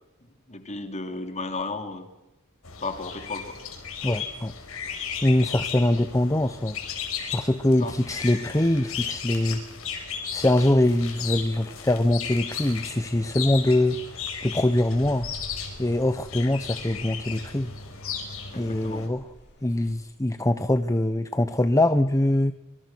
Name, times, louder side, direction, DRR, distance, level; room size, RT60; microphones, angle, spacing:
voice 1, 0.5-2.1 2.8-3.6 7.8-8.0 18.5-19.1, left 3 dB, 35° left, 7 dB, 2.8 m, -34 dB
sound 1, 2.6-19.1, left 7 dB, 70° left, 5.3 m, -35 dB
voice 2, 4.0-4.5 5.2-6.8 7.3-9.6 10.3-14.0 14.4-15.3 15.8-17.7 18.5-19.2 19.6-22.5, left 1 dB, 15° left, 10 dB, 0.9 m, -23 dB
sound 2, 14.8-19.9, equal, 55° left, 6.7 m, -50 dB
26.5 x 25.0 x 6.1 m, 0.97 s
head